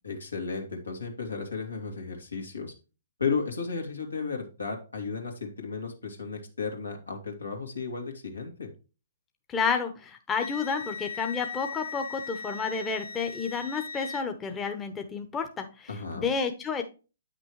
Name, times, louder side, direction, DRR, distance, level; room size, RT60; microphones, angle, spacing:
voice 1, 0.0-2.7 3.2-8.7 15.9-16.3, left 5 dB, 85° left, 2 dB, 2.3 m, -34 dB
voice 2, 9.5-16.8, left 5 dB, 15° left, 5 dB, 1.0 m, -31 dB
Wind instrument woodwind instrument, 10.3-14.2, left 5 dB, 65° left, 0.7 m, -39 dB
8.9 x 6.1 x 3.1 m, 0.32 s
figure-of-eight pair, 130°, 0 cm